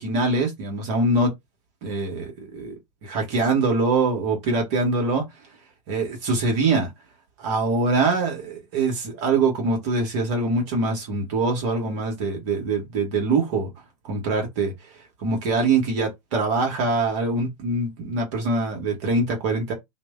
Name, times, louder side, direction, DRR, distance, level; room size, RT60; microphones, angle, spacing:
voice 1, 0.0-1.3 1.8-2.7 3.0-5.3 5.9-6.9 7.4-13.7 14.0-14.7 15.2-19.7, right 3 dB, 45° right, 1.2 m, -23 dB
2.5 x 2.1 x 3.4 m
figure-of-eight pair, 95°, 20 cm